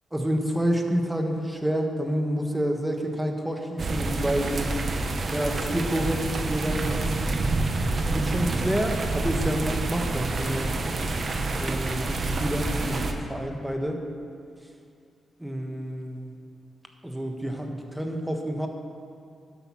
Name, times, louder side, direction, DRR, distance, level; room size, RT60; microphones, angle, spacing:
voice 1, 0.1-4.7 5.3-7.1 8.1-10.8 11.6-14.0 15.4-16.4 17.0-18.7, equal, 5° right, 3 dB, 1.2 m, -28 dB
sound 1, 3.8-13.1, right 2 dB, 45° right, 1.0 m, -28 dB
11.5 x 8.4 x 6.1 m, 2.4 s
cardioid pair, 115°, 0 cm